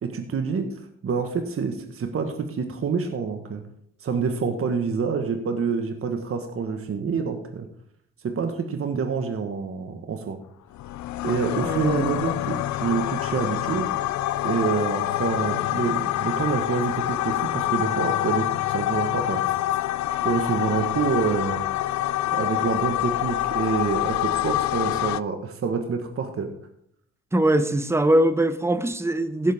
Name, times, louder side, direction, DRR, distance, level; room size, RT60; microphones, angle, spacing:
voice 1, 0.0-3.6 4.0-7.7 8.2-10.4 11.2-13.9 14.4-19.4 20.2-21.7 22.3-26.5, right 5 dB, 45° right, 6 dB, 1.4 m, -27 dB
sound 1, 10.8-25.2, left 14 dB, 70° left, 0.5 m, -26 dB
voice 2, 11.6-12.2 27.3-29.5, right 1 dB, 10° right, 11 dB, 0.9 m, -22 dB
16.5 x 7.2 x 3.6 m, 0.70 s
cardioid pair, 90°, 30 cm